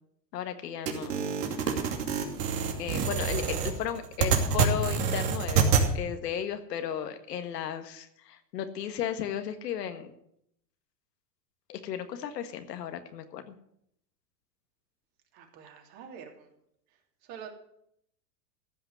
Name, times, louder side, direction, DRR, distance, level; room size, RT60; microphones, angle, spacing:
voice 1, 0.3-1.2 1.7-1.8 2.8-10.1 11.7-13.5, left 9 dB, 75° left, 8 dB, 1.8 m, -35 dB
sound 1, 0.9-5.9, right 6 dB, 70° right, 2.8 m, -27 dB
voice 2, 15.3-16.5 17.3-17.5, right 8 dB, 45° right, 3 dB, 3.1 m, -46 dB
14.5 x 5.9 x 9.5 m, 0.73 s
hypercardioid pair, 110°, 49 cm